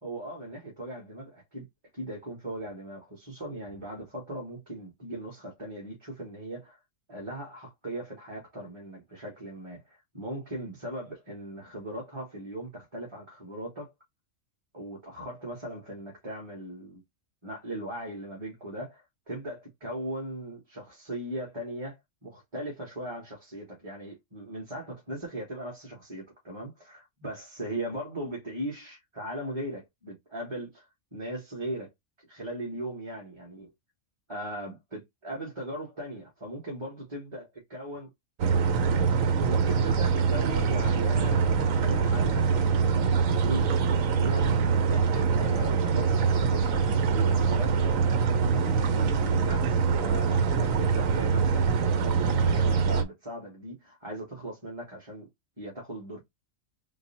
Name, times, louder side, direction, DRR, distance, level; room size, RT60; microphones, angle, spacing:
voice 1, 0.0-1.6 1.9-6.8 7.1-13.9 14.7-17.0 17.4-31.9 32.2-33.7 34.3-38.1 38.7-47.8 48.4-55.3 55.6-56.2, right 1 dB, 20° right, 1.4 m, -39 dB
sound 1, 38.4-53.0, right 5 dB, 80° right, 1.1 m, -24 dB
3.8 x 2.1 x 4.0 m
omnidirectional pair, 1.4 m